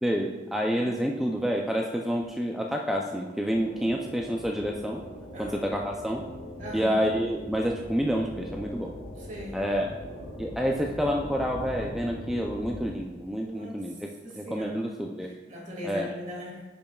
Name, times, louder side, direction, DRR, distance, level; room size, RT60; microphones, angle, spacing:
voice 1, 0.0-5.0 5.4-6.3 6.7-8.9 9.5-9.9 10.4-13.9 14.3-15.3 15.8-16.1, equal, ahead, 0 dB, 0.4 m, -28 dB
sound 1, 3.5-12.9, left 1 dB, 90° left, 1.3 m, -41 dB
voice 2, 6.6-6.9 9.2-9.6 13.4-13.8 14.2-14.8 15.5-16.7, equal, 45° right, -3 dB, 2.0 m, -39 dB
10.0 x 5.3 x 2.3 m, 1.2 s
head